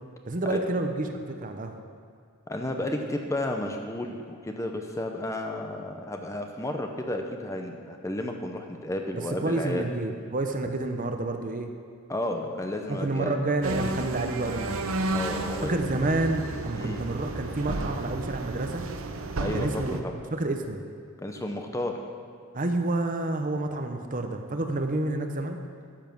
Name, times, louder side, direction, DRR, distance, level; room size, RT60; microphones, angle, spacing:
voice 1, 0.3-1.7 9.1-11.7 12.9-14.8 15.6-18.8 19.5-20.0 20.3-20.8 22.5-25.6, right 2 dB, 40° right, 5 dB, 0.8 m, -29 dB
voice 2, 2.5-9.8 12.1-13.4 15.1-16.0 16.7-17.0 19.4-20.2 21.2-22.0, left 1 dB, 15° left, 3 dB, 0.7 m, -32 dB
sound 1, 13.6-20.0, right 2 dB, 80° right, 0.8 m, -32 dB
12.0 x 7.3 x 6.0 m, 2.2 s
head